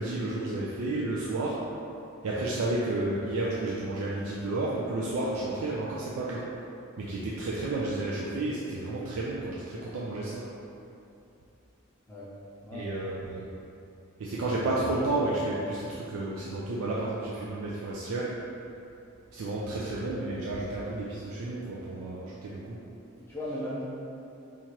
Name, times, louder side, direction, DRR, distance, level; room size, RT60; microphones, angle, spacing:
voice 1, 0.0-1.6 2.2-6.5 7.0-10.5 12.7-13.5 14.2-18.4 19.3-22.8, right 2 dB, 80° right, -6 dB, 0.4 m, -31 dB
voice 2, 23.2-23.8, left 1 dB, 10° left, -8 dB, 0.4 m, -36 dB
3.0 x 2.5 x 4.3 m, 2.7 s
head